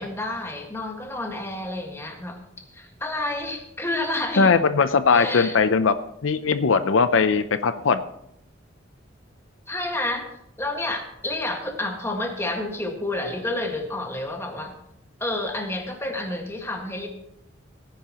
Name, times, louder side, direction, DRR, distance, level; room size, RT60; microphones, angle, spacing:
voice 1, 0.0-2.4 2.7-4.5 5.1-5.6 9.7-10.3 10.6-14.7 15.2-17.1, left 2 dB, 15° left, 2 dB, 1.7 m, -29 dB
voice 2, 4.4-5.9 6.2-8.0, left 5 dB, 85° left, 12 dB, 0.6 m, -19 dB
18.0 x 10.5 x 3.0 m, 0.76 s
head